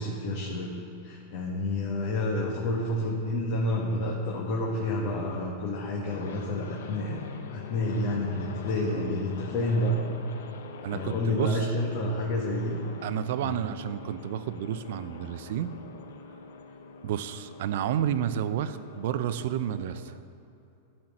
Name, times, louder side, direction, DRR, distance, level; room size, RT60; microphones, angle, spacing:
voice 1, 0.0-7.2 7.5-10.0 10.9-12.8 13.4-13.6, left 1 dB, 55° left, -2 dB, 1.4 m, -29 dB
sound 1, 6.1-20.2, left 5 dB, 80° left, 0.7 m, -44 dB
voice 2, 8.7-9.2 10.8-11.7 13.0-15.7 17.0-20.2, right 10 dB, 65° right, 12 dB, 0.5 m, -31 dB
12.0 x 4.4 x 6.5 m, 2.7 s
hypercardioid pair, 130°, 0 cm